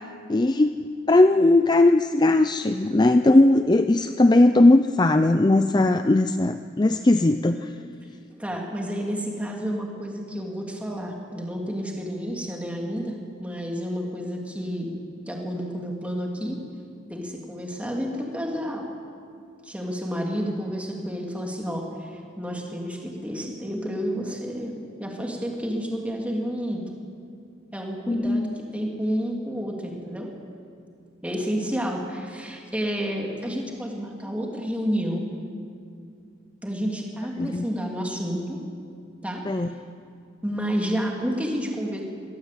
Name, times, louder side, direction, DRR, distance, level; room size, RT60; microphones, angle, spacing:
voice 1, 0.3-7.7 28.1-28.6 37.4-37.7 39.5-39.7, left 2 dB, 20° left, 9 dB, 0.4 m, -19 dB
voice 2, 8.4-14.9 15.3-16.6 17.1-18.8 19.6-24.7 25.0-26.8 27.7-30.3 31.2-35.2 36.6-38.6 39.2-39.4 40.4-42.0, equal, 5° right, 0 dB, 2.7 m, -30 dB
22.5 x 16.0 x 8.4 m, 2.4 s
head